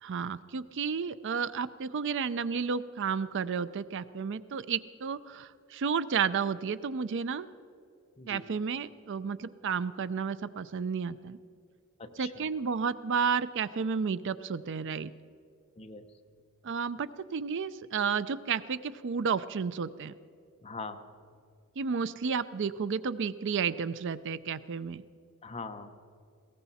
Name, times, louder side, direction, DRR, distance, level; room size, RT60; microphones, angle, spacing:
voice 1, 0.0-7.5 8.3-11.4 12.2-15.1 16.6-20.1 21.8-25.0, right 6 dB, 60° right, 15 dB, 0.5 m, -32 dB
voice 2, 12.0-12.5 15.8-16.1 20.6-21.0 25.4-26.0, left 3 dB, 30° left, 6 dB, 0.9 m, -42 dB
20.0 x 17.5 x 4.2 m, 2.4 s
head